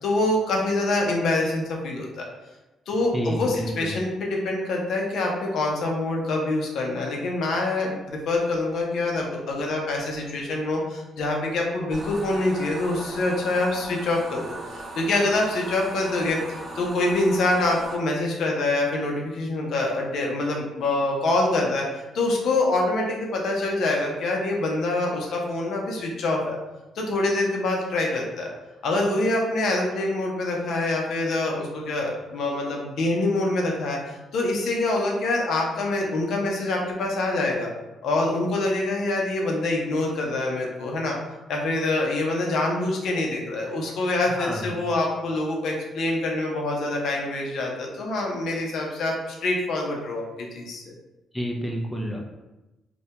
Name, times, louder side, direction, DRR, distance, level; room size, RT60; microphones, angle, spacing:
voice 1, 0.0-2.3 2.9-26.6 27.0-28.5 28.8-37.7 38.0-41.2 41.5-50.8, left 2 dB, 70° left, -1 dB, 0.5 m, -25 dB
voice 2, 3.1-3.9 44.4-44.8 51.3-52.2, equal, 10° left, 0 dB, 0.4 m, -29 dB
sound 1, 11.9-18.0, right 2 dB, 40° right, 0.6 m, -38 dB
2.1 x 2.1 x 2.8 m, 1.0 s
cardioid pair, 90°, 0 cm